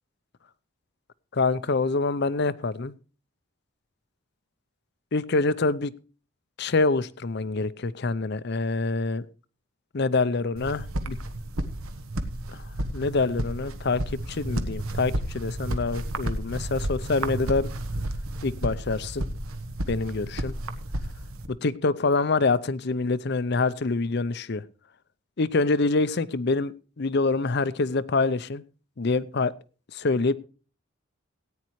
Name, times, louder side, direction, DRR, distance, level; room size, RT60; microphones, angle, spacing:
voice 1, 1.3-2.9 5.1-5.9 6.6-9.2 9.9-11.2 12.9-14.0 14.3-17.7 18.4-19.3 19.9-20.5 21.5-24.6 25.4-28.6 29.0-29.5 29.9-30.3, left 3 dB, 50° left, 17 dB, 0.6 m, -26 dB
sound 1, 10.6-21.5, right 1 dB, 85° right, 1.2 m, -32 dB
17.5 x 9.6 x 3.1 m, 0.36 s
head